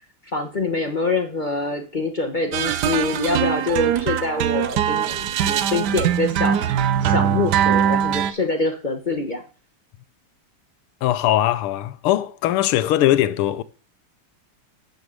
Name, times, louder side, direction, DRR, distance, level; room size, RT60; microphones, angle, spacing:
voice 1, 0.3-9.4, left 3 dB, 40° left, 0.6 m, -25 dB
sound 1, 2.5-8.3, right 9 dB, 70° right, 1.0 m, -21 dB
voice 2, 11.0-13.6, left 13 dB, 80° left, 1.5 m, -20 dB
9.3 x 7.0 x 6.4 m
omnidirectional pair, 2.4 m